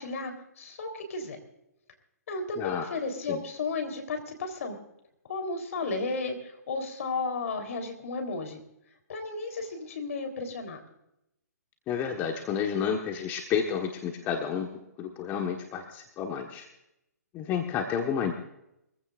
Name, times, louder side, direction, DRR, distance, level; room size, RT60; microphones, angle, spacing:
voice 1, 0.0-1.4 2.3-4.8 5.3-8.6 9.1-10.8, left 3 dB, 55° left, 6 dB, 3.8 m, -33 dB
voice 2, 2.6-2.9 3.3-3.4 11.9-16.7 17.3-18.3, left 7 dB, 20° left, 3 dB, 1.4 m, -30 dB
23.5 x 15.5 x 2.5 m, 0.84 s
figure-of-eight pair, 135°, 9 cm